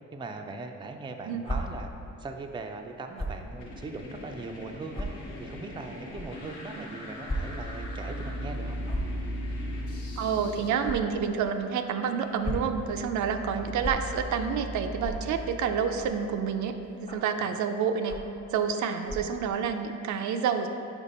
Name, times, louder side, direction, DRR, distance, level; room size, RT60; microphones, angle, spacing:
voice 1, 0.1-1.9 2.2-5.1 5.4-8.8 13.5-13.9 17.4-17.5, right 3 dB, 15° right, 4 dB, 0.4 m, -40 dB
sound 1, 1.4-1.6 3.1-3.4 4.1-4.2 4.9-5.1 6.1-6.2 7.2-7.4 7.7-7.9 8.8-9.1 10.8-11.0 12.2-12.7 13.8-13.9 15.0-15.2 16.0-16.2 17.1-17.3 18.1-18.3 19.0-19.3, equal, 20° left, 0.9 m, -34 dB
sound 2, 2.6-10.7, left 2 dB, 90° left, 0.9 m, -43 dB
sound 3, 7.4-11.1 12.4-16.8, equal, 75° left, 0.6 m, -38 dB
voice 2, 10.2-18.1 18.5-20.7, right 7 dB, 75° right, 6 dB, 0.5 m, -29 dB
5.2 x 4.7 x 4.1 m, 2.7 s
cardioid pair, 90°, 30 cm